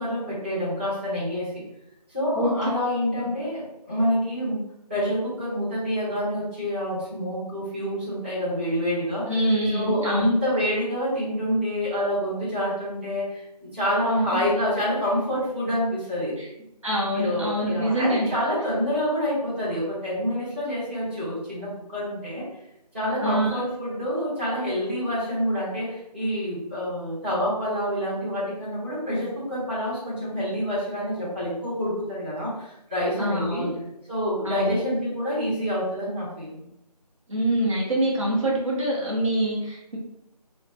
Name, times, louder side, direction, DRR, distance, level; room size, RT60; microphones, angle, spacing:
voice 1, 0.0-1.5 2.1-4.6 4.9-9.3 9.7-13.4 13.7-16.3 17.1-22.4 22.9-33.7 34.1-36.7, equal, 15° right, -12 dB, 0.9 m, -27 dB
voice 2, 2.3-2.7 9.3-10.3 14.1-14.4 16.4-16.5 16.8-18.3 23.2-23.6 33.2-33.7 34.4-34.8 37.3-40.0, right 1 dB, 50° right, -5 dB, 0.8 m, -25 dB
2.9 x 2.1 x 2.8 m, 0.85 s
figure-of-eight pair, 165°, 21 cm